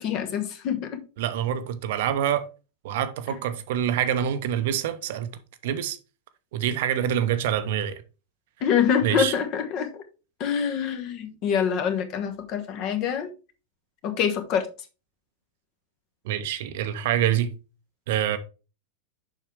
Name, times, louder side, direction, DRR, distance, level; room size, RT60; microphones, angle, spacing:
voice 1, 0.0-1.0 8.6-10.0 10.4-13.3 14.0-14.7, left 7 dB, 40° left, 1.2 m, -25 dB
voice 2, 1.2-2.5 2.8-5.3 5.6-6.0 6.5-8.0 9.0-9.3 16.2-17.5 18.1-18.4, right 10 dB, 55° right, 0.7 m, -26 dB
7.1 x 5.7 x 3.4 m
figure-of-eight pair, 90°, 0 cm